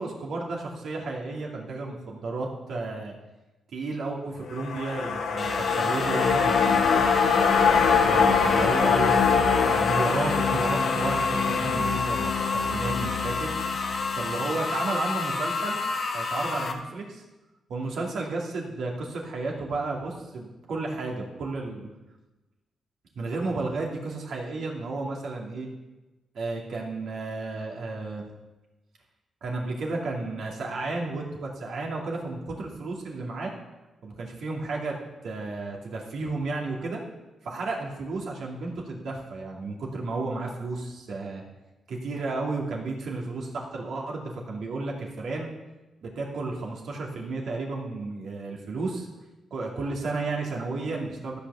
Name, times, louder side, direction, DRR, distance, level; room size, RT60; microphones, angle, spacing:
voice 1, 0.0-3.1 3.7-7.2 8.0-9.1 9.6-13.5 14.2-15.8 16.1-17.2 17.7-21.9 23.2-25.7 26.3-28.3 29.4-33.5 34.0-35.0 35.2-37.0 37.4-41.4 41.9-45.5 46.0-49.1 49.5-51.4, right 3 dB, 65° right, -1 dB, 2.6 m, -32 dB
sound 1, 4.5-14.9 15.2-15.3, left 5 dB, 80° left, 2.0 m, -24 dB
sound 2, 5.4-16.7, left 4 dB, 40° left, 1.3 m, -31 dB
14.0 x 6.0 x 7.0 m, 1.1 s
cardioid pair, 140°, 0 cm